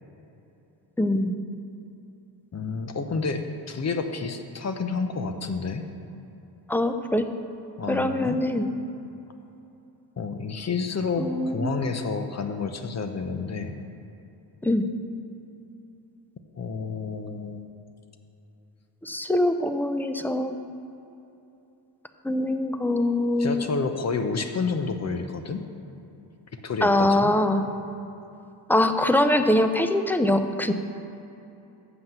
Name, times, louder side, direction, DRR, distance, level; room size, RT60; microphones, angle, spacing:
voice 1, 1.0-1.3 6.7-7.3 7.9-8.7 11.2-11.9 14.6-14.8 19.0-20.6 22.2-23.7 26.8-27.6 28.7-30.7, left 1 dB, 5° left, 8 dB, 0.4 m, -23 dB
voice 2, 2.5-5.9 7.8-8.4 10.2-13.7 16.6-17.6 23.4-25.6 26.6-27.3, left 4 dB, 40° left, 7 dB, 0.8 m, -29 dB
7.7 x 6.0 x 7.8 m, 2.9 s
cardioid pair, 115°, 42 cm